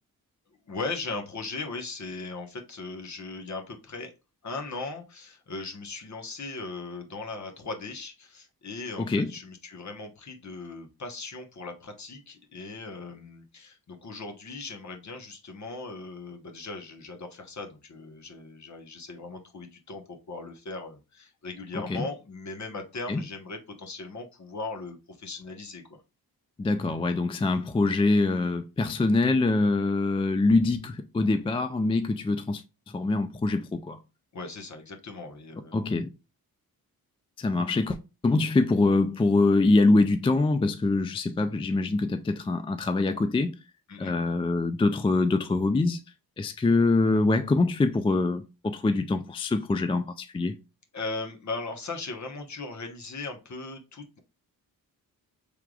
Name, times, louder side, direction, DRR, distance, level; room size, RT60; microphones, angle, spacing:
voice 1, 0.7-4.1 4.4-26.0 34.3-35.8 43.9-44.2 50.9-54.2, left 3 dB, 50° left, 1.1 m, -38 dB
voice 2, 9.0-9.3 21.9-22.0 23.1-23.2 26.6-32.6 32.9-34.0 35.7-36.1 37.4-38.0 38.2-43.5 44.0-46.0 46.4-50.6, left 3 dB, 15° left, 0.3 m, -24 dB
4.7 x 3.5 x 2.4 m
cardioid pair, 75°, 37 cm